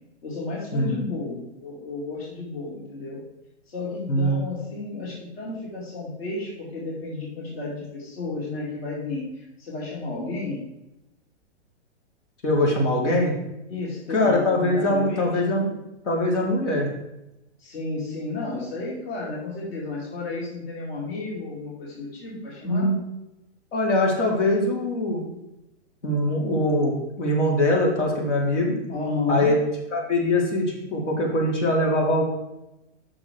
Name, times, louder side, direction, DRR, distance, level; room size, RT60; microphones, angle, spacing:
voice 1, 0.2-3.2 3.7-10.6 13.7-15.4 17.6-22.9 28.9-29.5, left 3 dB, 55° left, -4 dB, 2.6 m, -32 dB
voice 2, 4.1-4.4 12.4-13.3 14.1-15.7 16.0-16.9 22.6-22.9 23.7-25.3 26.0-28.8 29.3-29.5 29.9-32.2, left 1 dB, 80° left, -1 dB, 3.3 m, -22 dB
7.7 x 6.2 x 4.7 m, 0.92 s
hypercardioid pair, 170°, 35 cm